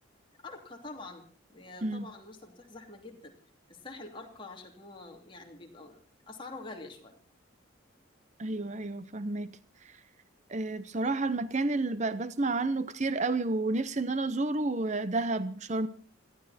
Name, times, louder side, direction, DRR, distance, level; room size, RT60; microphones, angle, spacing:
voice 1, 0.4-3.3 3.7-6.0 6.3-7.2, left 3 dB, 25° left, 2.9 m, -46 dB
voice 2, 8.4-9.5 9.8-10.0 10.5-15.9, right 2 dB, 35° right, 0.7 m, -30 dB
21.5 x 15.0 x 4.3 m
head